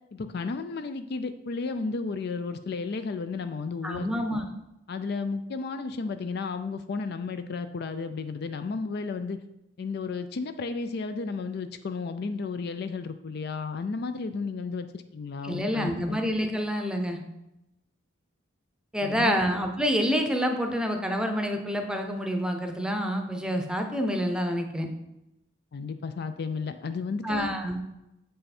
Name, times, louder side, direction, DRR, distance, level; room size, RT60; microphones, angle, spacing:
voice 1, 0.1-4.4 4.9-9.4 9.8-16.2 19.0-19.4 25.7-27.5, left 4 dB, 55° left, 10 dB, 0.4 m, -33 dB
voice 2, 3.8-4.4 15.4-17.2 18.9-24.9 27.2-27.8, equal, 5° right, 4 dB, 0.7 m, -27 dB
7.7 x 5.6 x 4.3 m, 0.89 s
head